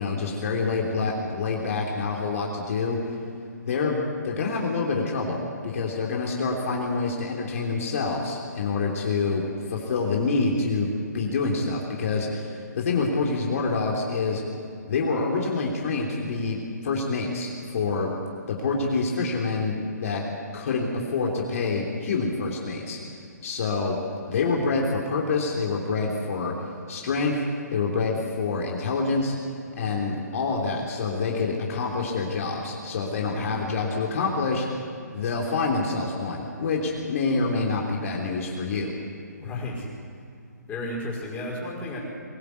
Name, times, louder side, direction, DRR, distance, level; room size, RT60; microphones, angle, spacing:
voice 1, 0.0-3.2 3.6-4.0 4.2-10.9 11.1-14.4 14.9-18.1 18.5-19.7 20.0-20.2 20.5-23.0 23.4-24.0 24.3-26.5 26.9-27.4 27.7-29.3 29.8-34.7 35.1-38.9, left 4 dB, 50° left, -1 dB, 3.4 m, -26 dB
voice 2, 33.2-33.8 39.4-39.9 40.7-42.0, left 1 dB, 15° left, -4 dB, 5.1 m, -33 dB
23.0 x 17.5 x 8.3 m, 2.5 s
hypercardioid pair, 145°, 10 cm